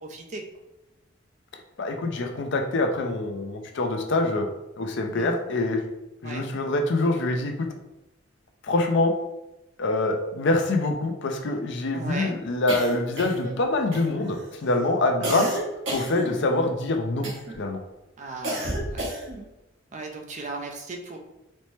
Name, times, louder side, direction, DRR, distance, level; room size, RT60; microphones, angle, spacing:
voice 1, 0.0-0.4 5.1-5.4 6.2-6.5 11.9-12.3 15.2-15.5 18.2-19.0 19.9-21.2, right 3 dB, 35° right, 3 dB, 0.5 m, -36 dB
voice 2, 1.8-4.5 4.8-5.8 6.2-7.7 8.6-9.1 9.8-15.5 15.9-17.3 17.6-17.8, left 2 dB, 60° left, 4 dB, 0.5 m, -25 dB
sound 1, 12.7-13.6 13.9-14.4 15.2-16.7 17.2-17.7 18.4-19.5, right 1 dB, 65° right, 1.1 m, -32 dB
4.2 x 2.1 x 3.1 m, 0.94 s
head